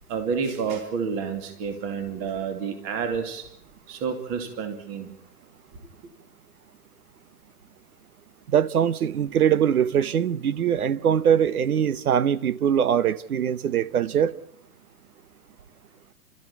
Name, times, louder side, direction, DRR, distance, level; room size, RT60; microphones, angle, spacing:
voice 1, 0.1-3.4 3.9-5.1, right 6 dB, 25° right, 2.6 m, -29 dB
voice 2, 8.5-14.4, right 8 dB, 70° right, 1.1 m, -22 dB
30.0 x 13.5 x 8.5 m
hypercardioid pair, 155°, 45 cm